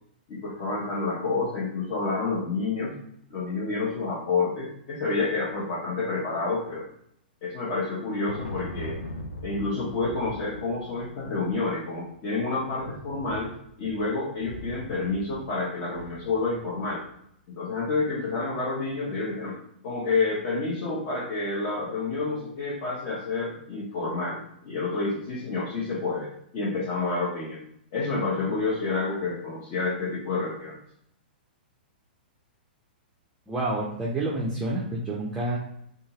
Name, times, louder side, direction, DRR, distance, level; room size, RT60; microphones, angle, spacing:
voice 1, 0.3-3.0 3.3-6.9 7.4-9.0 9.4-13.5 13.8-17.0 17.6-19.6 19.8-27.6 27.9-30.8, left 3 dB, 35° left, -7 dB, 0.8 m, -29 dB
Thunder, 7.8-17.1, left 2 dB, 65° left, 0.4 m, -41 dB
voice 2, 33.5-35.6, right 2 dB, 10° right, -5 dB, 0.5 m, -28 dB
2.6 x 2.4 x 2.9 m, 0.70 s
figure-of-eight pair, 105°, 5 cm